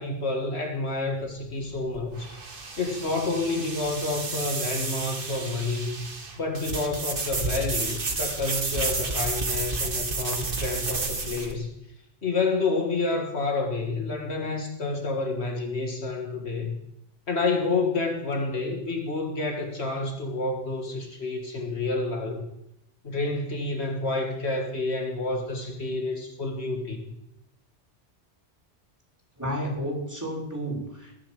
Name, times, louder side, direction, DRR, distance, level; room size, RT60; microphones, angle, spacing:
voice 1, 0.0-2.3 2.8-6.1 6.4-11.7 12.2-16.8 17.3-22.5 23.0-27.1, left 3 dB, 65° left, 2 dB, 2.0 m, -29 dB
sound 1, 1.2-11.5, right 3 dB, 50° right, 1.7 m, -31 dB
voice 2, 29.4-31.1, equal, 15° right, -2 dB, 4.5 m, -31 dB
20.5 x 7.1 x 7.6 m, 0.83 s
omnidirectional pair, 1.2 m